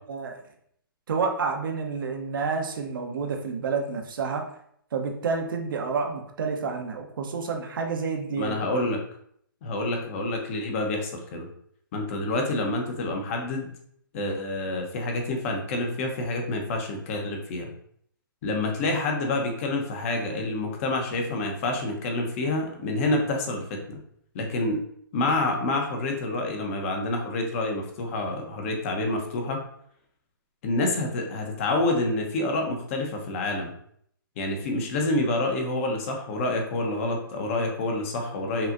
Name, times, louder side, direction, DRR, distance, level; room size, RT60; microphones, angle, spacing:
voice 1, 0.1-0.4 1.1-4.4 4.9-8.7, right 5 dB, 65° right, 3 dB, 0.8 m, -29 dB
voice 2, 8.4-9.0 9.6-11.5 11.9-13.7 14.1-17.7 18.4-24.0 24.3-24.8 25.1-29.6 30.6-33.7 34.4-38.7, left 2 dB, 35° left, 2 dB, 0.8 m, -28 dB
5.6 x 2.4 x 2.5 m, 0.67 s
hypercardioid pair, 140°, 12 cm